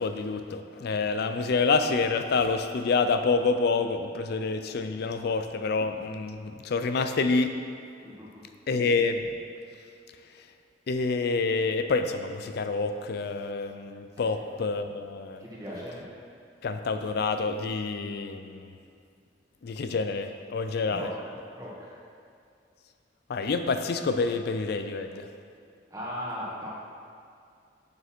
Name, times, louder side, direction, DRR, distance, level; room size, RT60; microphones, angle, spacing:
voice 1, 0.0-7.5 8.7-9.2 10.4-10.5 10.9-15.4 16.6-18.8 19.6-21.1 23.3-25.3, left 4 dB, 60° left, 8 dB, 0.4 m, -27 dB
voice 2, 8.0-8.4 14.2-14.3 15.4-16.0 20.9-21.3 21.5-22.0 25.9-26.8, equal, 20° right, -6 dB, 1.7 m, -38 dB
6.7 x 6.7 x 4.3 m, 2.4 s
head